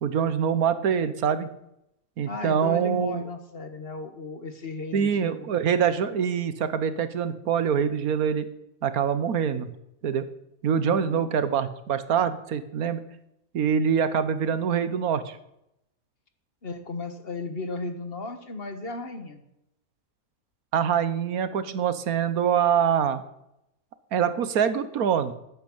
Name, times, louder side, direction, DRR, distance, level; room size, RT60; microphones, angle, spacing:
voice 1, 0.0-1.5 2.2-3.2 4.9-8.5 8.8-9.7 10.0-10.3 10.6-13.0 13.5-15.4 20.7-23.2 24.1-25.3, right 7 dB, 85° right, 12 dB, 1.5 m, -24 dB
voice 2, 2.2-5.5 10.7-11.4 16.6-19.4, left 3 dB, 45° left, 8 dB, 1.5 m, -35 dB
12.0 x 8.7 x 8.7 m, 0.82 s
omnidirectional pair, 1.5 m